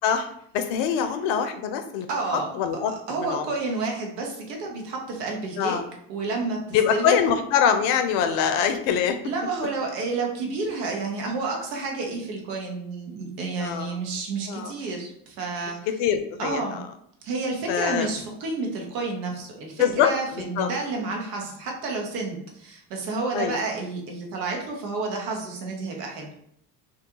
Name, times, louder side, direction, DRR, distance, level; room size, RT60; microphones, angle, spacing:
voice 1, 0.5-2.1 2.5-2.9 3.2-3.5 5.6-5.9 6.7-9.2 13.6-14.0 14.5-14.7 16.0-16.9 17.7-18.1 19.8-20.1 20.6-20.7 23.3-23.6, left 8 dB, 65° left, 8 dB, 0.5 m, -23 dB
voice 2, 2.1-2.5 2.9-5.8 6.1-7.2 9.2-15.9 16.4-16.8 17.2-26.3, right 3 dB, 75° right, 0 dB, 0.9 m, -30 dB
2.4 x 2.2 x 2.8 m, 0.69 s
hypercardioid pair, 65°, 48 cm